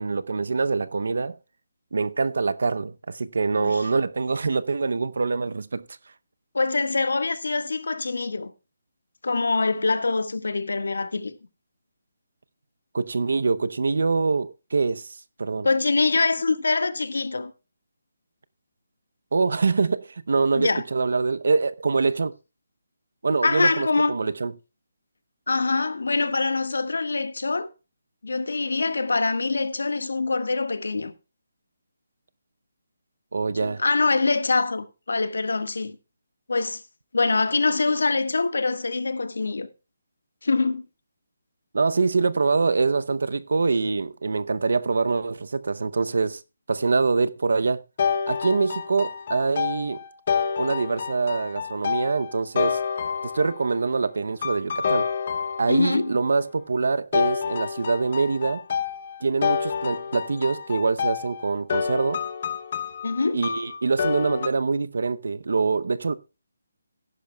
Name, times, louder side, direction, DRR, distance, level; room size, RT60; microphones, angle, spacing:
voice 1, 0.0-1.4 1.9-5.8 12.9-15.7 19.3-22.3 23.2-24.5 33.3-33.8 41.7-46.4 46.7-47.8 48.3-50.0 50.6-52.8 53.2-55.1 55.6-58.6 59.2-62.2 63.3-66.1, right 4 dB, 60° right, 0.7 m, -24 dB
voice 2, 6.5-8.5 9.2-11.3 15.6-17.5 20.6-20.8 23.4-24.1 25.5-27.7 28.2-31.1 33.6-36.0 36.5-36.8 37.1-39.7 40.4-40.8 55.7-56.1 63.0-63.4, left 3 dB, 90° left, 1.5 m, -24 dB
sound 1, 48.0-53.8 54.4-56.1 57.1-64.5, left 6 dB, 30° left, 0.8 m, -28 dB
15.5 x 11.0 x 2.3 m
hypercardioid pair, 180°, 0 cm